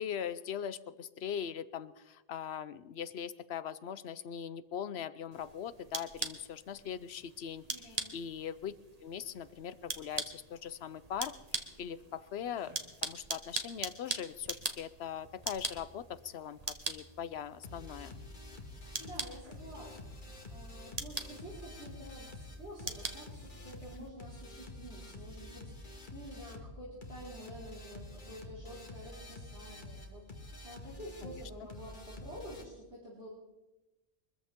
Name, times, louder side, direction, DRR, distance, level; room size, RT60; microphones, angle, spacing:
voice 1, 0.0-8.7 9.0-12.8 13.0-18.1 31.2-31.3, left 8 dB, 70° left, 15 dB, 1.0 m, -41 dB
sound 1, 5.3-24.1, right 3 dB, 35° right, 1.3 m, -43 dB
voice 2, 7.7-8.2 18.6-33.3, equal, 75° right, -9 dB, 5.0 m, -49 dB
sound 2, 17.6-32.6, left 2 dB, 45° left, 1.9 m, -48 dB
23.5 x 14.0 x 3.7 m, 1.0 s
omnidirectional pair, 1.1 m